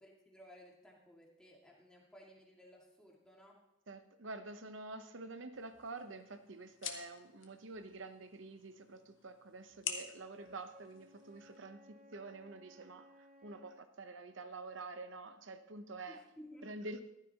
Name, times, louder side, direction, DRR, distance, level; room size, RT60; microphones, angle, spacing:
voice 1, 0.0-3.6 16.1-16.8, equal, 5° left, -3 dB, 2.1 m, -57 dB
voice 2, 3.9-16.2 16.6-17.1, right 3 dB, 65° right, 9 dB, 0.9 m, -48 dB
sound 1, 5.5-11.6, left 8 dB, 65° left, 1.2 m, -49 dB
Wind instrument woodwind instrument, 10.3-13.9, equal, 25° right, 1.4 m, -61 dB
14.5 x 12.5 x 3.0 m, 0.85 s
head